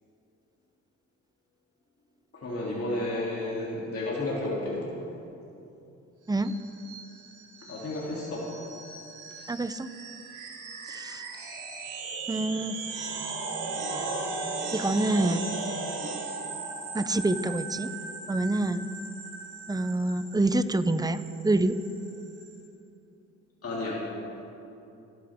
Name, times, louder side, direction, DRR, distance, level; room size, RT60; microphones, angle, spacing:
voice 1, 2.3-4.9 7.7-8.5 23.6-24.1, left 2 dB, 50° left, -6 dB, 3.1 m, -32 dB
sound 1, 6.4-22.6, right 3 dB, 80° right, 3.5 m, -37 dB
voice 2, 9.5-9.9 10.9-11.3 12.3-12.8 14.7-15.5 16.9-17.9 18.3-18.9 19.7-21.8, right 2 dB, 15° right, 12 dB, 0.7 m, -27 dB
27.0 x 11.0 x 3.7 m, 2.8 s
cardioid pair, 90°, 30 cm